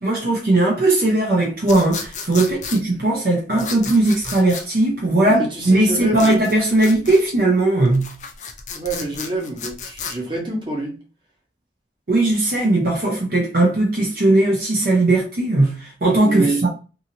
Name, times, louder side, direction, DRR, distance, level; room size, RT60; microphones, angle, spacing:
voice 1, 0.0-5.4 5.7-8.1 12.1-16.7, right 2 dB, 55° right, 0.7 m, -18 dB
sound 1, 1.6-2.8 3.6-4.7 6.1-7.2 7.9-10.2, left 5 dB, 40° left, 0.5 m, -33 dB
voice 2, 5.1-6.4 8.7-11.0 16.2-16.7, right 1 dB, 25° right, 1.1 m, -26 dB
2.7 x 2.6 x 2.8 m
head